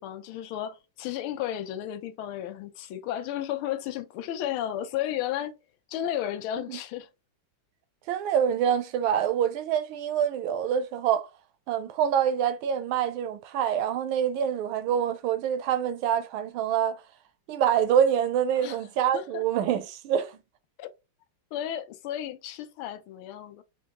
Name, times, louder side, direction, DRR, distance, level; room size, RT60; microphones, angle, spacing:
voice 1, 0.0-5.5 5.9-7.1 18.6-18.8 19.1-19.4 20.8-20.9 21.5-23.6, left 11 dB, 90° left, 1.5 m, -33 dB
voice 2, 8.1-11.3 11.7-17.0 17.5-20.4, right 9 dB, 80° right, 1.3 m, -26 dB
4.4 x 2.3 x 2.8 m
omnidirectional pair, 2.3 m